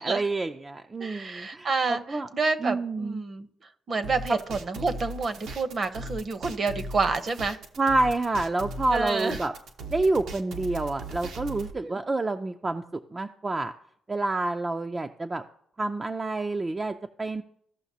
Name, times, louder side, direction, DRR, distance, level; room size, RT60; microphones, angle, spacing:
voice 1, 0.0-2.3 2.6-3.2 7.8-9.5 9.9-12.8 13.1-13.7 14.1-15.4 15.8-17.4, right 2 dB, 25° right, 5 dB, 0.4 m, -28 dB
voice 2, 1.0-3.5 3.9-7.6 8.9-9.4 11.7-12.0, right 4 dB, 45° right, 10 dB, 0.8 m, -29 dB
sound 1, 4.0-11.7, right 1 dB, 75° right, 0.8 m, -38 dB
15.0 x 5.7 x 2.7 m, 0.67 s
cardioid pair, 90°, 0 cm